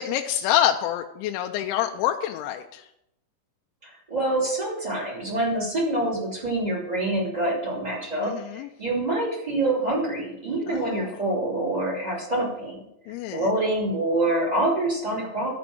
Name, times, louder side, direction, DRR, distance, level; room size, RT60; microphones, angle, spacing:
voice 1, 0.0-2.8 8.2-8.7 10.7-11.1 13.1-13.4, left 11 dB, 85° left, 3 dB, 2.8 m, -26 dB
voice 2, 3.8-12.8 13.3-15.5, right 2 dB, 15° right, -5 dB, 1.7 m, -26 dB
13.0 x 5.1 x 6.1 m, 0.82 s
omnidirectional pair, 5.5 m